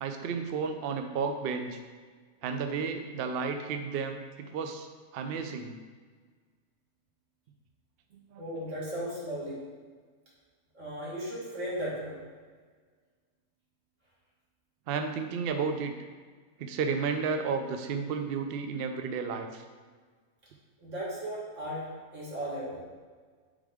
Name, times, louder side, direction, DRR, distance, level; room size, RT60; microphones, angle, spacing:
voice 1, 0.0-1.8 2.4-4.9 5.1-5.8 8.3-8.4 14.9-15.9 16.6-19.6, right 5 dB, 70° right, 6 dB, 0.5 m, -32 dB
voice 2, 8.4-9.6 10.7-12.2 20.8-21.9 22.1-22.8, equal, 50° right, -6 dB, 2.0 m, -36 dB
8.1 x 3.6 x 3.5 m, 1.5 s
omnidirectional pair, 1.6 m